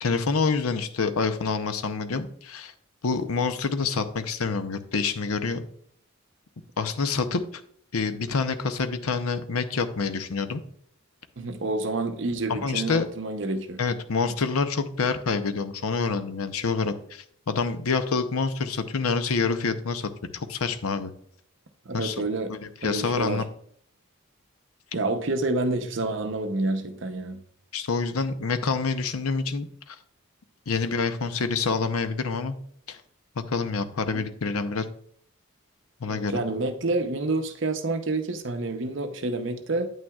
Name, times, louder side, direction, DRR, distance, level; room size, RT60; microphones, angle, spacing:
voice 1, 0.0-2.7 3.0-5.6 6.8-7.4 7.9-10.6 12.5-13.1 13.8-21.1 21.9-22.2 22.5-23.4 27.7-30.0 30.7-32.6 32.9-33.0 33.4-34.9 36.0-36.4, left 4 dB, 85° left, 10 dB, 0.7 m, -27 dB
voice 2, 11.4-13.8 21.9-22.5 22.8-23.4 24.9-27.4 34.1-34.2 36.1-39.9, right 2 dB, 55° right, 8 dB, 0.7 m, -28 dB
9.1 x 8.7 x 2.4 m, 0.64 s
head